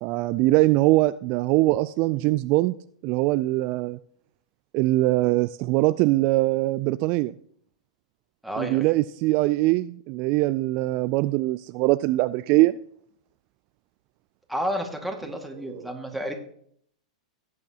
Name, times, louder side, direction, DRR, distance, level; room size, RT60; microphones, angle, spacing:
voice 1, 0.0-2.7 3.0-4.0 4.7-7.3 8.6-12.8 15.7-15.8, right 19 dB, 45° right, 0.3 m, -22 dB
voice 2, 8.4-8.9 14.5-16.3, equal, ahead, 2.0 m, -31 dB
16.5 x 8.5 x 2.9 m
hypercardioid pair, 115°, 4 cm